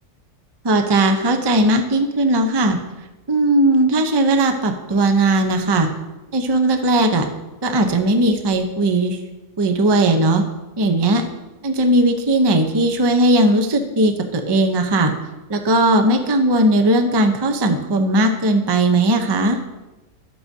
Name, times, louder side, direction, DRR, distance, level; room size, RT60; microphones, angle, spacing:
voice 1, 0.6-2.8 3.3-5.9 6.3-7.3 7.6-9.2 9.6-10.5 10.8-11.2 11.6-15.1 15.5-19.6, right 1 dB, 35° right, 5 dB, 0.4 m, -17 dB
12.0 x 7.6 x 2.7 m, 1.1 s
omnidirectional pair, 1.6 m